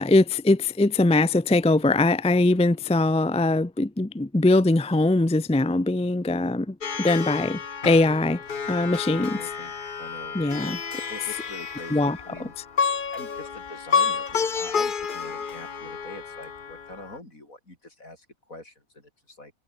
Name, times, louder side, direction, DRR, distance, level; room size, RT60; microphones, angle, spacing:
voice 1, 0.0-7.6 7.8-8.4 8.7-9.4 10.3-10.8 11.9-12.5, left 2 dB, 10° left, 0.4 m, -22 dB
Plucked string instrument, 6.8-17.2, left 6 dB, 40° left, 1.2 m, -30 dB
voice 2, 9.0-10.4 11.1-12.5 13.1-19.5, left 2 dB, 70° left, 7.1 m, -44 dB
omnidirectional pair, 1.5 m